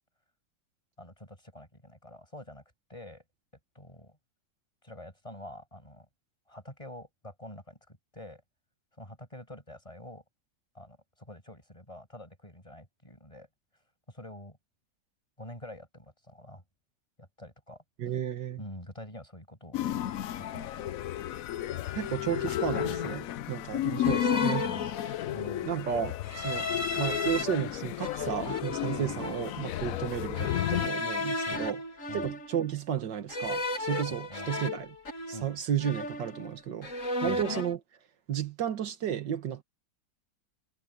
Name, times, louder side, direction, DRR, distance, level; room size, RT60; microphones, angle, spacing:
voice 1, 1.0-2.6 2.9-3.2 3.8-4.2 4.8-6.1 6.5-8.4 9.0-10.2 10.7-13.5 14.1-14.6 15.4-16.6 17.2-18.1 18.6-19.8 20.4-21.0 24.3-25.0 25.3-25.7 29.0-29.3 29.9-30.0 31.5-31.7 32.1-32.3 34.1-34.5 35.3-35.5 37.2-37.5, left 1 dB, 15° left, 7.1 m, -46 dB
voice 2, 18.0-18.6 21.9-24.7 25.6-26.7 27.0-31.8 32.1-35.0 35.3-36.9 37.2-37.8 38.3-39.6, right 9 dB, 80° right, 2.0 m, -33 dB
sound 1, 19.7-30.9, left 12 dB, 65° left, 0.9 m, -33 dB
sound 2, 21.6-21.9 22.7-23.3 24.0-25.4 26.2-27.4 28.0-29.6 30.3-32.7 33.3-35.6 35.8-36.5 36.8-37.7, left 2 dB, 45° left, 2.7 m, -35 dB
omnidirectional pair, 1.9 m